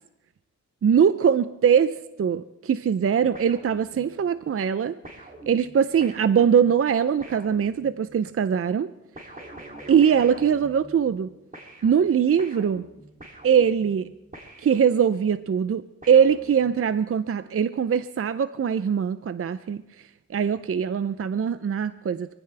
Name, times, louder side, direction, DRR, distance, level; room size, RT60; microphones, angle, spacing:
voice 1, 0.8-5.0 5.5-8.9 9.9-11.3 11.8-12.9 13.4-14.1 14.6-22.3, right 7 dB, 45° right, 13 dB, 0.5 m, -22 dB
sound 1, 3.3-4.3 5.0-8.2 9.2-11.3 11.5-15.3 16.0-17.0, right 1 dB, 25° right, 2.8 m, -45 dB
23.5 x 15.5 x 3.3 m, 0.92 s
wide cardioid pair, 90°, 31 cm